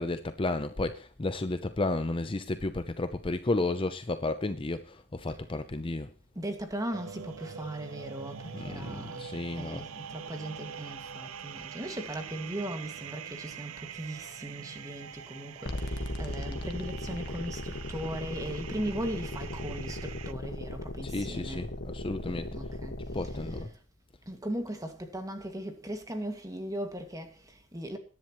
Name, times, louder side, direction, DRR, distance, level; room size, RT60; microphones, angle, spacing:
voice 1, 0.0-6.1 8.5-9.9 21.0-22.5 23.1-23.7, left 2 dB, 25° left, 0.6 m, -32 dB
voice 2, 6.4-9.3 9.6-21.6 22.2-23.7 24.3-28.0, right 1 dB, 15° right, 2.0 m, -38 dB
sound 1, 6.9-20.3, right 7 dB, 80° right, 0.6 m, -44 dB
sound 2, 15.7-23.7, left 1 dB, 50° left, 1.6 m, -37 dB
21.5 x 10.5 x 3.1 m
head